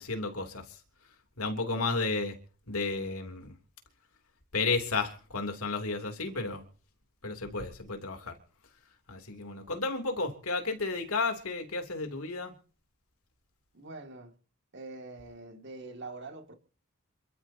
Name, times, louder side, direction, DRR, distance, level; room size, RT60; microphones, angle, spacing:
voice 1, 0.0-2.4 2.7-3.6 4.5-6.6 7.2-8.4 9.1-12.5, left 3 dB, 80° left, 3.2 m, -33 dB
voice 2, 13.7-14.4 14.7-16.5, right 3 dB, 55° right, 2.5 m, -44 dB
28.0 x 13.0 x 2.9 m
head